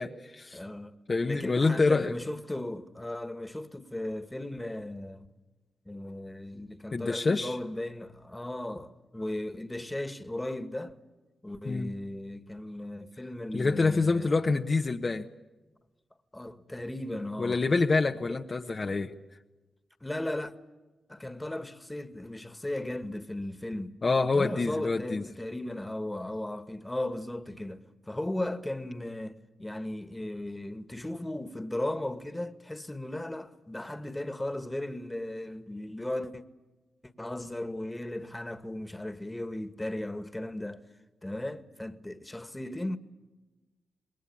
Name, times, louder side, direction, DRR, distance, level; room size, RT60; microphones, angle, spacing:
voice 1, 0.0-0.6 1.1-2.1 6.9-7.6 11.6-11.9 13.5-15.3 17.4-19.1 24.0-25.2, left 3 dB, 45° left, 1.1 m, -26 dB
voice 2, 0.5-0.9 1.2-5.3 5.9-11.0 11.4-14.3 16.3-17.6 18.3-18.4 18.9-19.0 20.0-20.5 21.1-36.4 37.2-40.8 41.2-43.0, left 1 dB, 15° left, 1.8 m, -36 dB
26.5 x 20.5 x 8.6 m
supercardioid pair, 45°, 0 cm